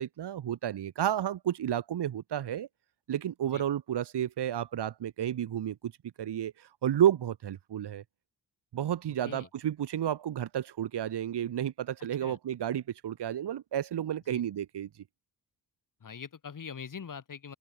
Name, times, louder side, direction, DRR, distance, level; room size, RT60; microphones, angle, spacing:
voice 1, 0.0-2.7 3.1-5.9 6.2-8.0 8.7-14.9, right 10 dB, 70° right, 1.5 m, -31 dB
voice 2, 12.0-12.4 14.3-14.4 16.0-17.6, left 6 dB, 50° left, 3.1 m, -43 dB
open air
cardioid pair, 105°, 42 cm